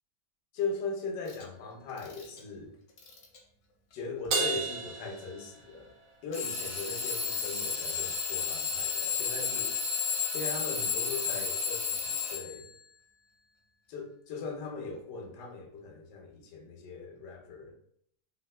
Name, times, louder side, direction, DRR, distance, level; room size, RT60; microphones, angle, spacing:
voice 1, 0.5-2.8 3.9-6.0 6.2-9.8 10.3-12.7 13.9-17.7, left 4 dB, 85° left, 2 dB, 1.2 m, -39 dB
Alarm / Clock, 1.3-1.4 2.0-2.4 3.0-3.4 4.2-4.3 6.3-12.7, left 6 dB, 65° left, 0.7 m, -32 dB
Crash cymbal, 4.3-6.0, right 4 dB, 70° right, 1.1 m, -33 dB
3.4 x 2.3 x 2.2 m, 0.67 s
omnidirectional pair, 1.8 m